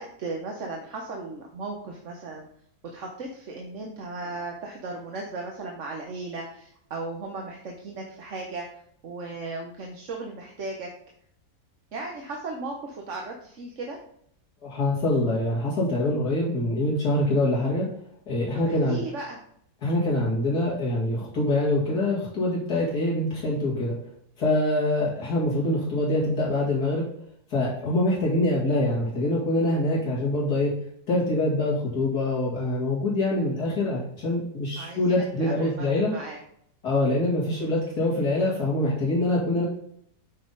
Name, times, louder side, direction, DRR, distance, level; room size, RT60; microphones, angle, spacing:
voice 1, 0.0-2.5 2.9-8.7 9.0-10.9 11.9-14.0 18.5-19.4 34.8-36.4 37.5-37.8, right 3 dB, 55° right, 0 dB, 1.3 m, -36 dB
voice 2, 14.6-17.9 18.3-19.0 19.8-23.9 24.4-27.1 27.5-30.7 31.1-36.1 36.8-39.7, left 1 dB, 80° left, -6 dB, 2.9 m, -24 dB
8.6 x 5.8 x 4.0 m, 0.69 s
omnidirectional pair, 1.7 m